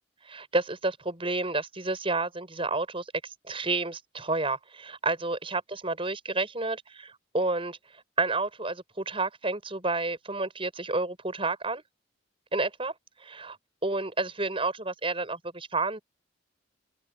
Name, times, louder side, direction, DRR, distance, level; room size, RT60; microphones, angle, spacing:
voice 1, 0.2-7.8 8.2-11.8 12.5-12.9 13.2-13.6 13.8-16.0, right 3 dB, 30° right, 6.2 m, -30 dB
head